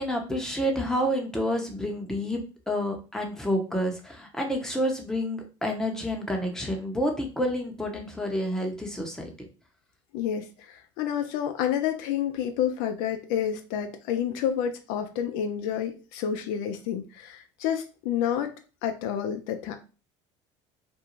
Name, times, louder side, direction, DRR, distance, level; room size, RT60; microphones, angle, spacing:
voice 1, 0.0-2.4 2.7-9.5, equal, 5° left, 1 dB, 0.8 m, -29 dB
voice 2, 10.1-18.5 18.8-19.7, left 9 dB, 70° left, 6 dB, 0.4 m, -29 dB
2.5 x 2.2 x 3.0 m, 0.33 s
hypercardioid pair, 80°, 15 cm